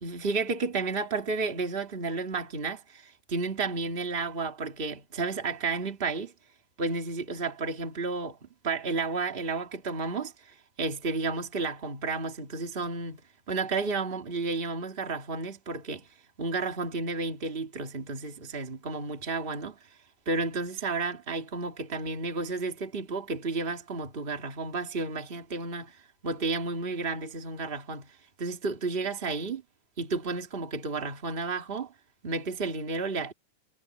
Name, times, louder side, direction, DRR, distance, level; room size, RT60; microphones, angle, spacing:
voice 1, 0.0-6.3 6.8-10.3 10.8-13.2 13.5-16.1 16.4-19.8 20.2-25.9 26.2-28.1 28.4-29.6 30.0-31.9 32.2-33.3, right 4 dB, 70° right, 0.5 m, -32 dB
omnidirectional pair, 5.2 m